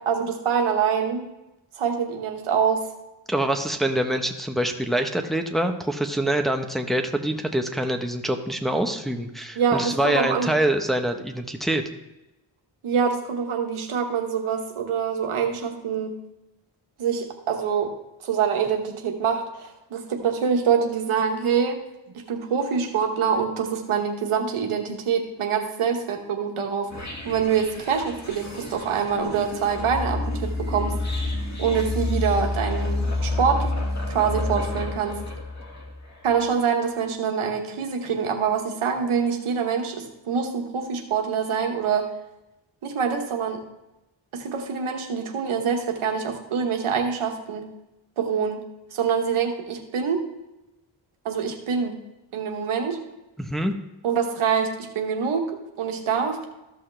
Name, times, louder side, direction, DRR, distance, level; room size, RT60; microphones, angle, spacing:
voice 1, 0.1-1.3 1.8-2.8 9.5-10.5 12.8-16.1 17.0-17.9 18.2-21.8 22.1-31.2 31.6-33.7 34.1-35.2 36.2-42.1 42.8-43.6 44.3-47.6 48.2-48.6 48.9-50.2 51.2-52.0 52.3-53.0 54.0-55.4 55.8-56.4, right 6 dB, 90° right, 3 dB, 1.2 m, -25 dB
voice 2, 3.3-11.8 53.4-53.7, right 1 dB, ahead, 5 dB, 1.0 m, -25 dB
sound 1, 26.9-36.1, left 2 dB, 35° left, 2.1 m, -29 dB
14.0 x 5.7 x 3.3 m, 0.96 s
cardioid pair, 45°, 48 cm